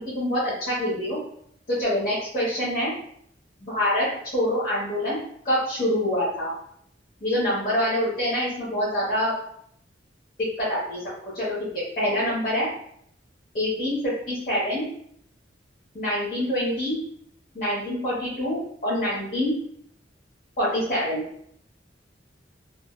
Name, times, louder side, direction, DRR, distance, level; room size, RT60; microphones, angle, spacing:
voice 1, 0.1-1.2 1.7-2.9 3.6-4.1 4.3-5.2 5.4-6.5 7.2-9.3 10.4-11.0 11.3-12.7 13.5-14.9 15.9-17.0 17.5-19.5 20.6-21.2, left 1 dB, 50° left, -10 dB, 1.1 m, -25 dB
2.7 x 2.3 x 2.3 m, 0.67 s
head